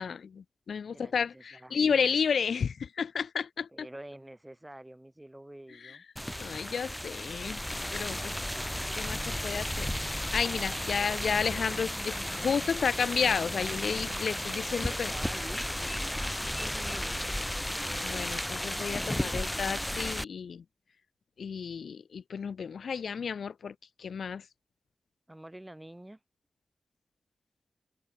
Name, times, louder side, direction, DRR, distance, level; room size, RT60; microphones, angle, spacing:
voice 1, 0.0-3.9 5.8-6.0 6.4-7.6 7.9-8.3 9.0-15.1 18.0-20.6 21.4-24.4, left 6 dB, 85° left, 0.3 m, -32 dB
voice 2, 0.9-2.1 3.7-6.0 14.5-16.2 16.6-17.2 25.3-26.2, right 1 dB, 15° right, 4.0 m, -47 dB
sound 1, 6.2-20.2, left 1 dB, 5° left, 1.3 m, -34 dB
wide cardioid pair, 75°, 0 cm